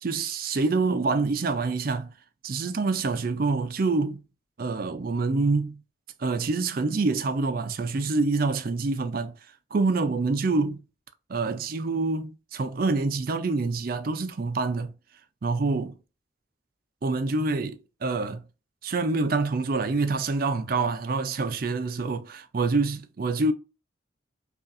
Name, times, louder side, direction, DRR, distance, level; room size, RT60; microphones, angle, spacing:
voice 1, 0.0-2.1 2.4-4.2 4.6-5.8 6.2-9.3 9.7-10.8 11.3-14.9 15.4-16.0 17.0-18.4 18.8-23.5, right 3 dB, 45° right, 0.4 m, -26 dB
5.3 x 2.4 x 2.5 m
head